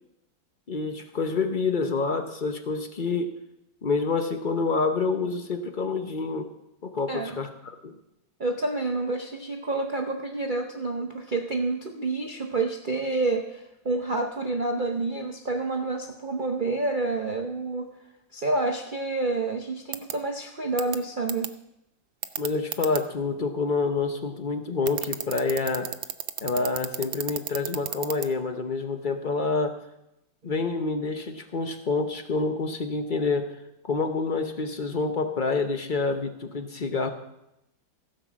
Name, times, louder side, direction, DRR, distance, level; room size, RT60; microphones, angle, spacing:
voice 1, 0.7-3.3 3.8-6.5 6.8-7.9 22.4-25.9 26.4-29.8 30.4-33.5 33.9-37.1, left 4 dB, 45° left, 6 dB, 0.6 m, -27 dB
voice 2, 8.4-18.0 18.3-21.5 30.4-30.5, right 3 dB, 55° right, 3 dB, 0.5 m, -28 dB
sound 1, 19.9-20.1 20.8-21.0 21.3-21.5 22.2-23.0 24.9-28.3, right 11 dB, 75° right, 1.4 m, -30 dB
16.0 x 5.6 x 7.4 m, 0.86 s
omnidirectional pair, 2.1 m